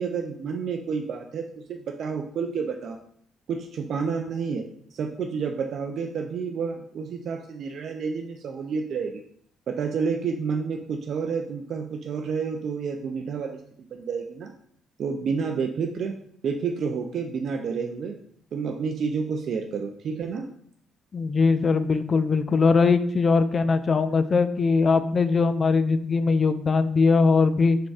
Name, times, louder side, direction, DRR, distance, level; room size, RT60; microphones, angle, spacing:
voice 1, 0.0-3.0 3.5-9.2 9.7-13.6 13.9-14.5 15.0-16.2 16.4-18.2 18.5-20.5, right 5 dB, 65° right, 4 dB, 0.4 m, -29 dB
voice 2, 21.1-27.8, left 4 dB, 45° left, 12 dB, 0.3 m, -21 dB
4.3 x 4.0 x 2.4 m, 0.63 s
supercardioid pair, 60°, 0 cm